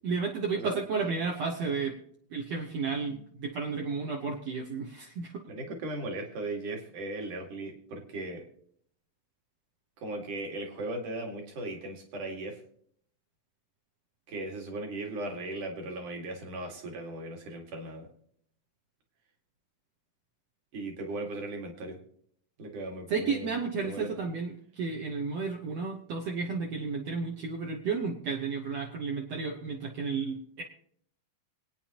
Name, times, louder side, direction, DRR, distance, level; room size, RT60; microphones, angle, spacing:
voice 1, 0.0-1.9 2.3-5.4 23.1-30.6, right 5 dB, 70° right, -1 dB, 1.5 m, -32 dB
voice 2, 5.5-8.5 10.0-12.6 14.3-18.1 20.7-22.0 22.6-24.1, right 2 dB, 55° right, 2 dB, 3.2 m, -37 dB
25.5 x 9.3 x 2.9 m, 0.65 s
omnidirectional pair, 4.7 m